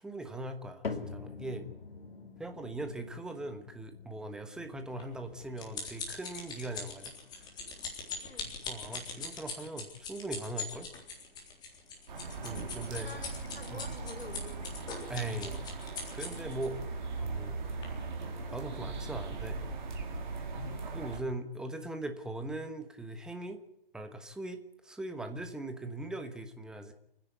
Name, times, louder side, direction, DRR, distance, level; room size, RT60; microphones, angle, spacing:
voice 1, 0.0-1.6 2.4-7.1 8.7-10.9 12.4-13.1 13.7-13.8 15.1-15.6 16.1-16.8 17.2-17.6 18.5-19.6 20.9-23.6 23.9-26.9, right 2 dB, ahead, 7 dB, 1.2 m, -40 dB
sound 1, 0.8-17.2 17.5-18.0 18.6-18.7 19.5-19.6, left 4 dB, 70° left, 2.8 m, -49 dB
sound 2, 5.0-16.7 17.3-17.5 17.8-17.9, left 4 dB, 15° left, 3.8 m, -41 dB
voice 2, 8.2-8.5 12.9-14.7, left 2 dB, 90° left, 6 dB, 3.9 m, -48 dB
sound 3, 12.1-21.2, right 3 dB, 50° right, 3.7 m, -39 dB
28.5 x 10.5 x 9.5 m, 0.79 s
hypercardioid pair, 145°, 30 cm